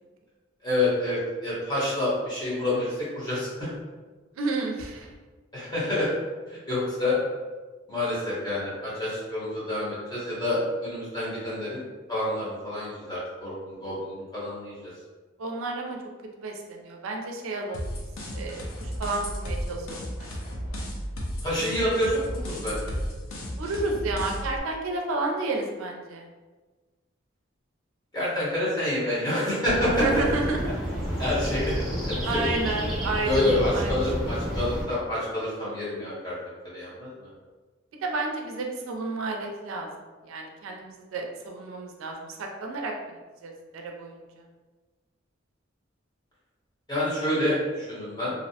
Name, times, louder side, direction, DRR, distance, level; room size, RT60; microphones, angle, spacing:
voice 1, 0.6-3.7 5.5-6.1 6.5-7.2 7.9-11.8 12.1-14.8 21.4-22.9 28.1-29.9 31.2-31.7 32.1-32.5 33.2-36.3 36.7-37.3 46.9-48.3, left 1 dB, 20° left, -9 dB, 0.9 m, -28 dB
voice 2, 4.4-5.1 15.4-16.0 16.4-17.9 18.3-20.3 23.6-26.3 29.9-30.8 32.2-33.4 33.7-33.9 38.0-39.9 40.3-43.2 43.4-44.2, right 2 dB, 85° right, 1 dB, 0.4 m, -31 dB
sound 1, 17.7-24.6, equal, 90° left, 0.5 m, -34 dB
sound 2, 29.6-34.8, equal, ahead, 0.5 m, -30 dB
2.6 x 2.0 x 2.7 m, 1.3 s
head